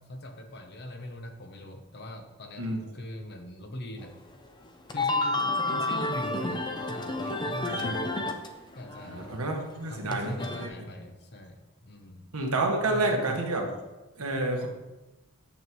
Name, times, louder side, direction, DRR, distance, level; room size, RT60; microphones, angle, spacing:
voice 1, 0.0-2.7 2.9-4.1 4.9-8.2 8.7-9.4 9.9-12.3 12.8-13.2, left 1 dB, 50° left, 5 dB, 0.9 m, -42 dB
sound 1, 4.0-4.1 4.6-8.5 8.7-10.7, left 2 dB, 20° left, 0.5 m, -30 dB
voice 2, 7.7-8.0 9.0-10.3 10.6-10.7 12.3-13.7 14.2-14.7, right 2 dB, 80° right, 1 dB, 1.4 m, -29 dB
8.9 x 7.2 x 3.1 m, 1.1 s
head